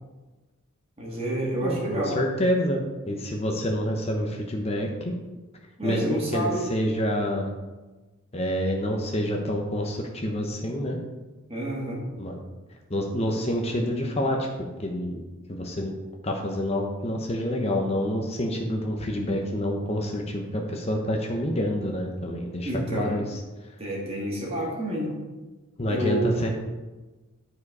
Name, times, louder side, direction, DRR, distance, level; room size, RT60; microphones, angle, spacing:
voice 1, 1.0-2.2 5.8-6.6 11.5-12.0 22.6-23.2 23.8-25.1 25.9-26.4, right 1 dB, 30° right, -3 dB, 2.1 m, -28 dB
voice 2, 1.6-5.1 5.8-7.5 8.3-11.0 12.2-12.4 12.9-15.2 15.5-15.9 16.2-23.4 25.8-26.5, equal, 30° left, 1 dB, 0.9 m, -28 dB
11.5 x 4.9 x 4.8 m, 1.2 s
head